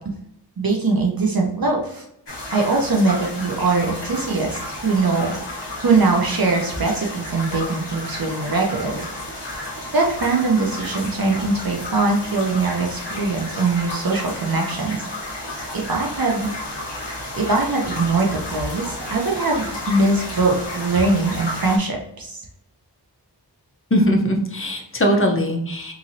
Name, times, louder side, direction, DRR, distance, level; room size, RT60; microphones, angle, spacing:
voice 1, 0.6-2.0 2.5-5.4 5.8-9.5 9.9-15.1 15.7-16.5 17.3-22.4, right 3 dB, 60° right, 0 dB, 0.6 m, -22 dB
sound 1, 2.3-21.8, left 1 dB, 85° left, 0.9 m, -32 dB
voice 2, 23.9-25.9, equal, 30° left, 1 dB, 0.7 m, -20 dB
2.9 x 2.7 x 2.6 m, 0.76 s
wide cardioid pair, 45°, 41 cm